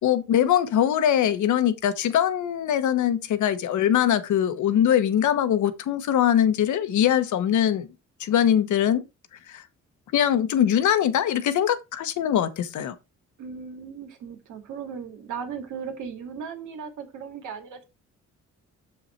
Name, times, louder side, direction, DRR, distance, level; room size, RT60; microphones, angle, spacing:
voice 1, 0.0-7.9 8.2-9.0 9.5-9.6 10.1-12.9, left 10 dB, 75° left, 1.2 m, -22 dB
voice 2, 13.4-17.8, right 6 dB, 80° right, 2.3 m, -37 dB
7.0 x 5.6 x 4.4 m
cardioid pair, 90°, 30 cm